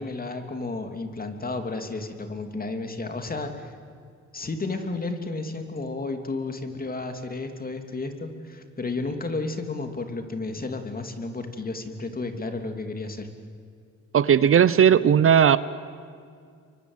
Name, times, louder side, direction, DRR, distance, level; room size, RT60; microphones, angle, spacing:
voice 1, 0.0-3.7 4.3-13.3, left 3 dB, 30° left, 6 dB, 2.9 m, -32 dB
voice 2, 14.1-15.6, right 8 dB, 45° right, 16 dB, 0.8 m, -17 dB
29.0 x 24.0 x 8.1 m, 2.2 s
cardioid pair, 90°, 30 cm